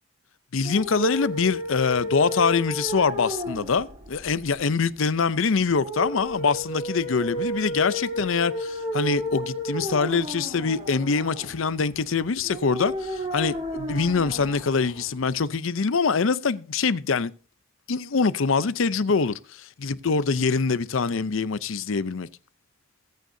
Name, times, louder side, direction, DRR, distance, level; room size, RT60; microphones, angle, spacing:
voice 1, 0.5-17.3 17.9-22.3, left 5 dB, 65° left, 0.6 m, -24 dB
sound 1, 0.6-15.6, equal, 25° right, 6.6 m, -33 dB
21.0 x 9.2 x 2.7 m
head